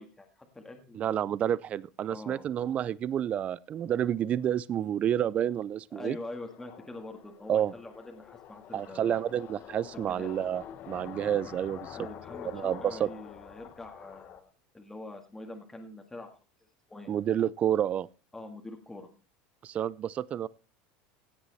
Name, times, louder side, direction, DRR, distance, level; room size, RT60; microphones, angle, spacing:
voice 1, 0.0-1.3 2.1-2.5 5.9-9.3 10.1-10.3 11.9-16.3 16.6-17.1 18.3-19.1, left 2 dB, 10° left, 1.9 m, -44 dB
voice 2, 0.9-6.2 7.5-7.7 8.7-12.0 12.5-13.1 17.1-18.1 19.6-20.5, right 10 dB, 30° right, 0.5 m, -29 dB
sound 1, 6.1-14.4, left 10 dB, 40° left, 1.4 m, -47 dB
16.0 x 8.1 x 4.2 m
supercardioid pair, 140°, 4 cm